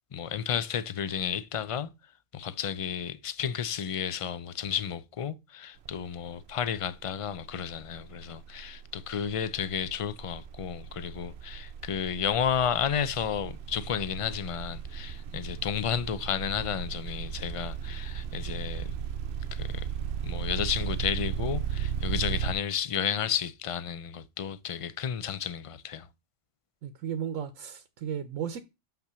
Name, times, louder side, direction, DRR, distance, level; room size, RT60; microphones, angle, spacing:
voice 1, 0.1-1.9 2.3-18.9 19.5-19.9 20.2-26.1, left 8 dB, 60° left, 0.3 m, -32 dB
sound 1, 5.8-6.1 6.4-22.5, right 8 dB, 60° right, 0.8 m, -36 dB
voice 2, 26.8-28.6, right 8 dB, 85° right, 1.2 m, -34 dB
5.9 x 5.8 x 6.8 m
omnidirectional pair, 1.3 m